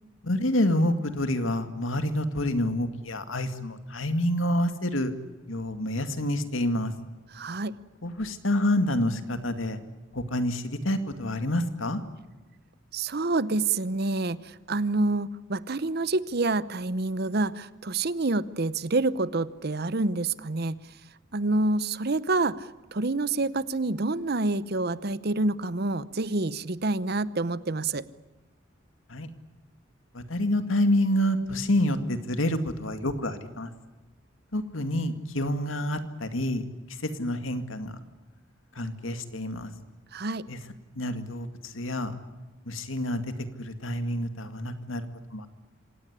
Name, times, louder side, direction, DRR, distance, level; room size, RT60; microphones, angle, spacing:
voice 1, 0.2-5.1 5.5-6.9 8.0-9.8 10.1-12.0 29.1-29.3 30.1-33.7 34.5-36.7 37.0-38.0 38.8-39.7 40.5-40.6 40.9-42.1 42.7-43.2 43.6-45.0 45.3-45.5, left 1 dB, 85° left, 9 dB, 2.2 m, -28 dB
voice 2, 7.3-7.8 12.9-20.8 21.3-28.1 40.1-40.4, right 2 dB, 50° right, 17 dB, 0.8 m, -27 dB
26.5 x 17.5 x 10.0 m, 1.2 s
head